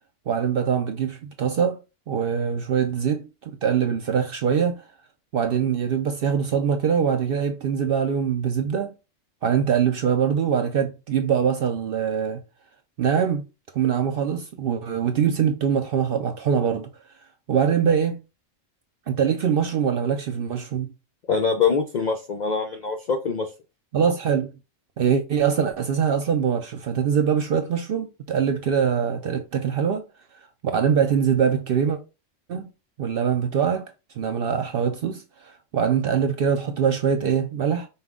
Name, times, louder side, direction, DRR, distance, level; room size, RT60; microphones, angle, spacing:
voice 1, 0.3-1.8 2.1-4.8 5.3-8.9 9.4-12.4 13.0-13.4 13.7-16.9 17.5-18.2 19.1-20.9 23.9-24.5 25.0-30.0 30.6-32.0 32.5-32.7 33.0-33.9 34.2-37.9, right 7 dB, 65° right, 0.6 m, -23 dB
voice 2, 21.3-23.5, left 5 dB, 65° left, 0.4 m, -24 dB
5.5 x 2.2 x 3.6 m
omnidirectional pair, 1.3 m